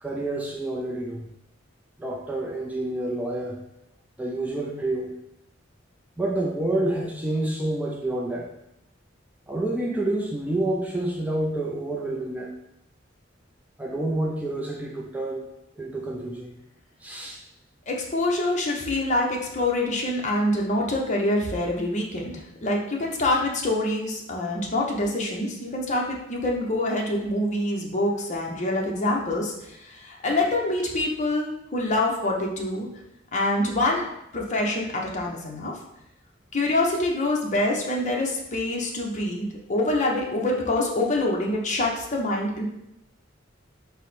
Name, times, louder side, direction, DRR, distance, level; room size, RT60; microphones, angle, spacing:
voice 1, 0.0-1.3 2.0-3.6 4.2-5.1 6.2-8.5 9.5-12.5 13.8-15.5 15.8-16.5 17.0-17.4, right 1 dB, 10° right, 0 dB, 0.4 m, -28 dB
voice 2, 17.9-32.9 33.3-34.0 34.3-35.7 36.5-42.6, left 1 dB, 40° left, -1 dB, 0.8 m, -25 dB
4.8 x 2.1 x 4.1 m, 0.82 s
head